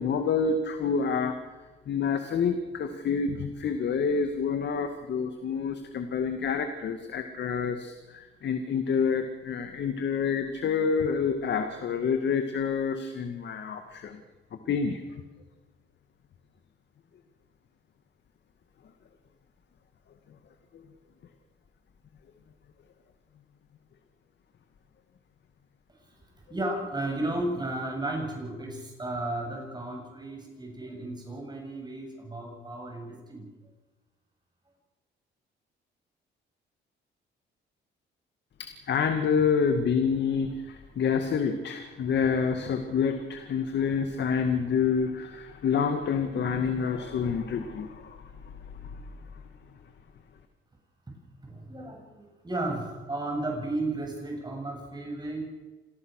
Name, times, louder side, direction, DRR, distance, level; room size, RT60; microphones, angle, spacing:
voice 1, 0.0-1.4 1.9-14.2 14.7-15.0 20.7-20.8 38.6-48.3 48.8-49.0, left 6 dB, 60° left, 7 dB, 2.2 m, -28 dB
voice 2, 26.5-33.5 51.4-55.5, right 2 dB, 20° right, 1 dB, 7.5 m, -34 dB
27.5 x 18.5 x 6.6 m, 1.2 s
cardioid pair, 90°, 20 cm